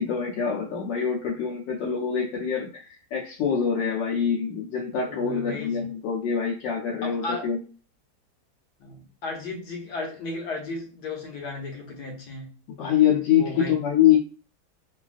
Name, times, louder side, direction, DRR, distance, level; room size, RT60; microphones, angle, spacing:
voice 1, 0.0-7.6 12.8-14.2, left 8 dB, 85° left, 1.3 m, -25 dB
voice 2, 5.1-5.8 7.0-7.5 8.8-12.5 13.3-13.7, left 3 dB, 70° left, 1.3 m, -35 dB
3.2 x 2.2 x 2.4 m
omnidirectional pair, 1.9 m